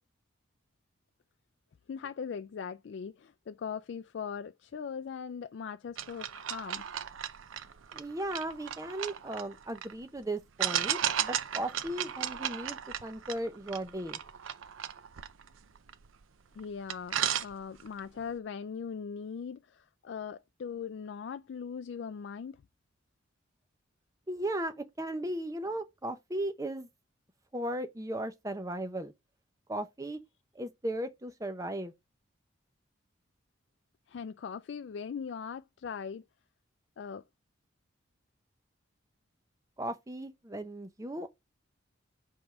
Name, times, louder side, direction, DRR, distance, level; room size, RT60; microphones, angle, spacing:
voice 1, 1.9-6.8 16.6-22.6 34.1-36.2 37.0-37.2, left 6 dB, 60° left, 0.3 m, -40 dB
sound 1, 6.0-9.9 10.6-16.2 16.6-16.7 16.9-18.0, right 10 dB, 85° right, 0.6 m, -35 dB
voice 2, 7.9-14.2 24.3-26.9 27.5-29.1 29.7-30.2 30.5-31.9 39.8-41.3, right 1 dB, 15° right, 0.7 m, -36 dB
5.2 x 4.6 x 6.0 m
head